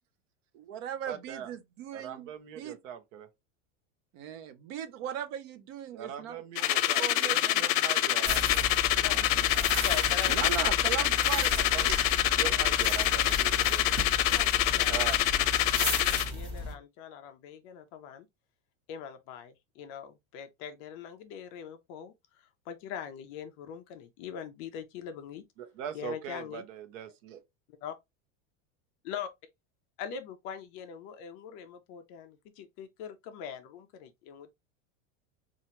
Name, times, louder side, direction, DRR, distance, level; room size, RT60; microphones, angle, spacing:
voice 1, 0.6-2.3 2.5-2.8 4.1-7.6 9.1-9.2 9.5-9.8 10.2-11.9, right 9 dB, 50° right, 0.6 m, -38 dB
voice 2, 1.1-1.5 1.9-3.3 5.9-8.7 11.7-11.9 12.3-14.0 14.9-15.2 25.6-27.4, right 9 dB, 75° right, 0.9 m, -41 dB
sound 1, 6.6-16.3, left 15 dB, 80° left, 0.6 m, -26 dB
sound 2, 8.2-16.7, left 1 dB, 10° right, 1.1 m, -35 dB
voice 3, 9.0-10.5 11.0-11.1 12.4-12.6 14.3-15.1 15.8-18.3 18.9-25.4 25.9-26.6 27.7-27.9 29.0-29.3 30.0-34.5, left 8 dB, 35° left, 0.4 m, -42 dB
4.4 x 2.5 x 2.8 m
supercardioid pair, 165°, 39 cm